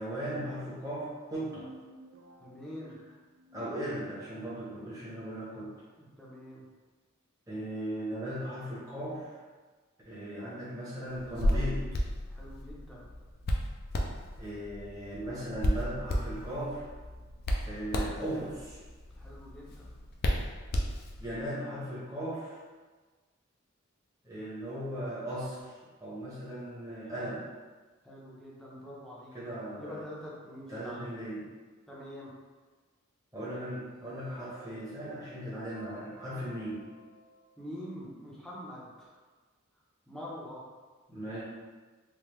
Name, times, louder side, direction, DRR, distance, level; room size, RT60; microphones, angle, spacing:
voice 1, 0.0-1.7 3.5-5.7 7.5-9.4 10.0-11.8 14.4-16.9 17.6-18.8 21.2-22.6 24.2-25.7 26.0-27.4 29.3-30.0 30.7-31.5 33.3-36.8 41.1-41.4, right 1 dB, 15° right, -9 dB, 1.0 m, -37 dB
sound 1, 1.2-4.6, equal, 65° right, 0.3 m, -54 dB
voice 2, 2.4-3.0 5.9-6.7 12.3-13.1 19.2-19.9 27.2-27.4 28.0-29.3 29.8-31.1 31.9-32.3 37.6-39.1 40.1-40.6, equal, ahead, -7 dB, 0.6 m, -45 dB
Hands, 11.1-21.4, equal, 45° left, 0.4 m, -33 dB
sound 2, 33.8-38.1, right 2 dB, 85° right, 1.3 m, -55 dB
3.4 x 2.3 x 3.0 m, 1.4 s
head